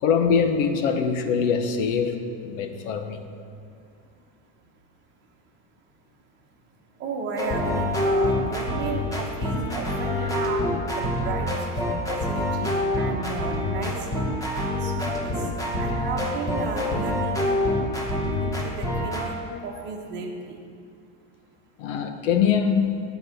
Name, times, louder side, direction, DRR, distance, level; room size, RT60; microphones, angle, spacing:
voice 1, 0.0-3.2 21.8-23.0, left 6 dB, 85° left, 7 dB, 1.1 m, -23 dB
voice 2, 7.0-11.7 12.1-14.1 14.8-15.5 15.8-17.5 18.1-20.6, right 4 dB, 30° right, 0 dB, 1.1 m, -34 dB
sound 1, 7.4-19.3, left 1 dB, 10° left, 0.9 m, -26 dB
10.0 x 4.9 x 8.0 m, 2.4 s
cardioid pair, 170°, 37 cm